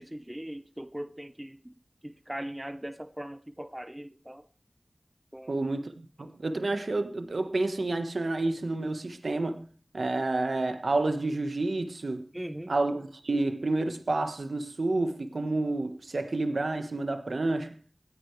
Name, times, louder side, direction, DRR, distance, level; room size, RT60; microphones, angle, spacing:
voice 1, 0.0-1.7 2.0-4.4 5.3-5.6 12.3-12.7, right 1 dB, 15° right, 0.8 m, -40 dB
voice 2, 5.5-9.7 9.9-12.2 12.7-17.7, right 2 dB, 75° right, 1.3 m, -29 dB
17.5 x 9.5 x 3.3 m
wide cardioid pair, 45°, 0 cm